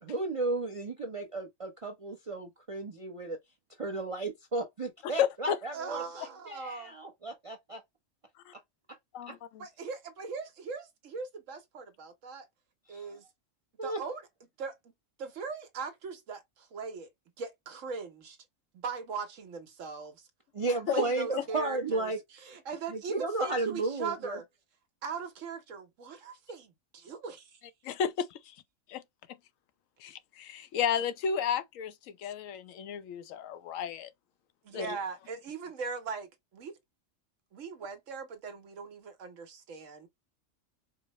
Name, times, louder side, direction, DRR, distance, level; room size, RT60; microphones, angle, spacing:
voice 1, 0.0-3.4 3.8-7.8 12.9-13.1 13.8-14.0 20.5-22.2 22.9-24.4, right 2 dB, 35° right, 0.6 m, -34 dB
voice 2, 5.2-5.6 8.5-8.6 9.1-9.7 21.4-21.5 27.8-28.6 28.9-29.0 29.3-29.4 30.0-34.1 34.7-35.0, left 8 dB, 80° left, 1.0 m, -33 dB
voice 3, 5.7-7.0 9.6-12.5 12.9-13.2 13.8-14.2 14.6-14.9 15.2-17.1 17.4-18.4 18.7-20.3 20.9-24.4 25.0-27.6 34.6-36.8 37.5-40.1, right 5 dB, 70° right, 1.2 m, -40 dB
4.7 x 2.0 x 2.9 m
omnidirectional pair, 1.4 m